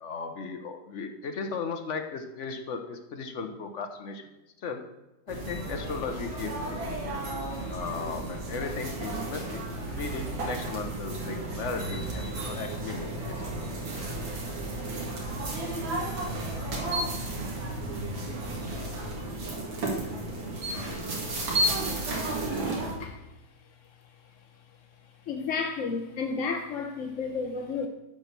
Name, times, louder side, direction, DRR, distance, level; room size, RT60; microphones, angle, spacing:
voice 1, 0.0-4.3 4.6-4.8 5.3-7.1 7.7-13.7, left 4 dB, 45° left, 1.1 m, -36 dB
sound 1, 5.3-22.9, right 2 dB, 75° right, 2.8 m, -33 dB
voice 2, 25.3-27.9, left 4 dB, 60° left, 0.8 m, -31 dB
11.5 x 4.5 x 6.7 m
omnidirectional pair, 2.2 m